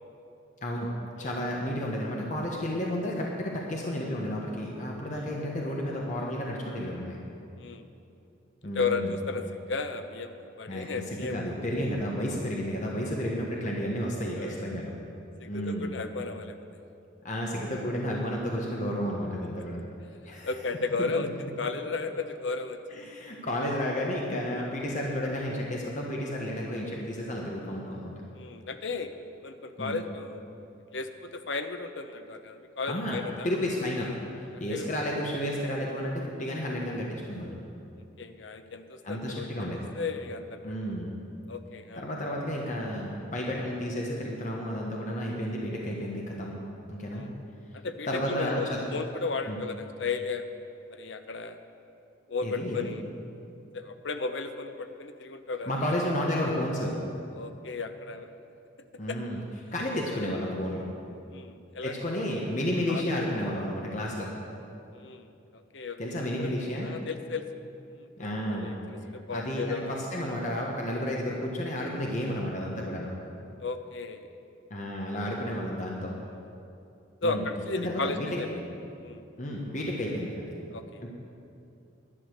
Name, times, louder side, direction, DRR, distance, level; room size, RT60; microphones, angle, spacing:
voice 1, 0.6-0.9 1.2-7.2 8.6-9.1 10.7-14.9 15.5-15.9 17.2-19.9 20.2-20.5 21.0-21.3 22.9-28.1 29.8-29.9 32.9-34.1 34.6-37.6 39.0-39.8 40.6-41.1 41.9-46.5 46.9-47.3 48.0-48.9 49.5-49.6 52.4-52.9 55.7-57.0 59.0-59.4 59.7-60.8 61.8-64.3 66.0-66.9 68.2-68.7 69.3-73.1 74.7-76.1 77.2-77.5 77.8-78.6 79.4-80.4 81.0-81.1, equal, 40° left, -2 dB, 1.3 m, -32 dB
voice 2, 8.7-9.4 9.7-11.4 14.3-14.6 15.4-16.6 20.4-21.3 21.6-23.1 28.3-29.1 29.4-30.4 30.9-33.5 34.7-34.8 38.2-39.5 39.9-40.7 41.5-42.1 47.1-47.3 47.7-50.4 50.9-51.6 52.3-53.0 53.7-56.0 57.4-58.3 59.1-59.2 61.3-61.9 62.9-63.0 64.9-65.3 65.5-66.5 66.8-67.4 67.9-68.1 68.5-70.2 73.6-74.3 77.2-78.5 79.0-79.2 80.7-81.0, left 4 dB, 70° left, 8 dB, 0.8 m, -34 dB
11.0 x 9.9 x 6.6 m, 2.6 s
head